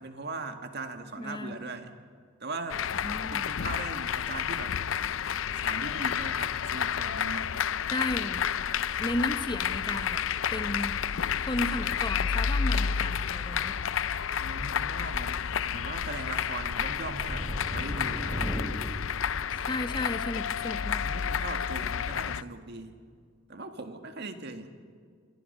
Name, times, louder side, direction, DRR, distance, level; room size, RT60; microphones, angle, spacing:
voice 1, 0.0-1.9 2.4-2.8 3.3-4.7 5.5-7.6 14.4-18.5 21.0-23.0 23.5-24.7, right 3 dB, 55° right, 6 dB, 1.8 m, -39 dB
voice 2, 1.2-1.6 3.0-3.5 7.9-8.5 9.0-10.2 10.5-10.9 11.5-13.8 19.6-21.0, left 1 dB, 25° left, 9 dB, 1.1 m, -34 dB
sound 1, 2.7-22.4, left 7 dB, 70° left, 0.5 m, -30 dB
Thunder, 11.3-18.6, equal, 5° right, 3.8 m, -40 dB
28.0 x 25.0 x 5.5 m, 2.1 s
head